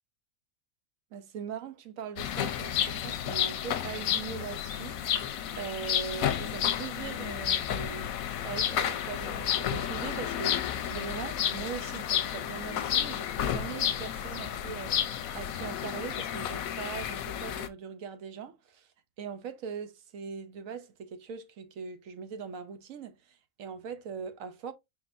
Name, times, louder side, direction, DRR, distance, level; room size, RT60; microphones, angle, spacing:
voice 1, 1.1-5.3 5.6-8.1 8.4-15.0 15.3-18.9 19.2-24.7, right 7 dB, 75° right, 1.1 m, -41 dB
sound 1, 2.2-17.7, left 10 dB, 90° left, 1.1 m, -31 dB
4.3 x 3.8 x 2.5 m
omnidirectional pair, 1.4 m